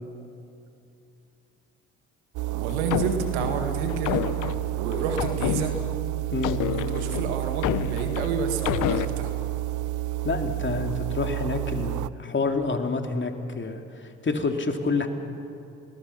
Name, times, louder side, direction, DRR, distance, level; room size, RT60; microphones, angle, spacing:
sound 1, 2.3-12.1, right 16 dB, 65° right, 0.6 m, -30 dB
voice 1, 2.5-4.2 4.7-5.7 6.7-9.3, right 6 dB, 90° right, 6 dB, 1.8 m, -30 dB
sound 2, 2.7-6.0 6.4-9.1, left 13 dB, 70° left, 0.8 m, -29 dB
voice 2, 10.2-15.1, left 3 dB, 35° left, 5 dB, 2.9 m, -28 dB
29.5 x 20.5 x 6.0 m, 2.7 s
hypercardioid pair, 50°, 32 cm